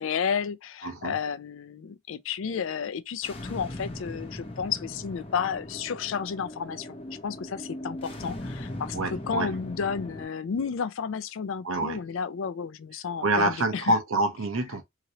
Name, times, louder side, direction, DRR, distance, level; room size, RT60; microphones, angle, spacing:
voice 1, 0.0-7.0 7.2-13.9, left 6 dB, 65° left, 0.4 m, -32 dB
voice 2, 0.8-1.2 8.9-9.5 11.6-12.1 13.2-14.8, right 2 dB, 75° right, 0.8 m, -26 dB
sound 1, 3.2-10.3, left 1 dB, 25° left, 0.6 m, -39 dB
2.9 x 2.8 x 2.8 m
head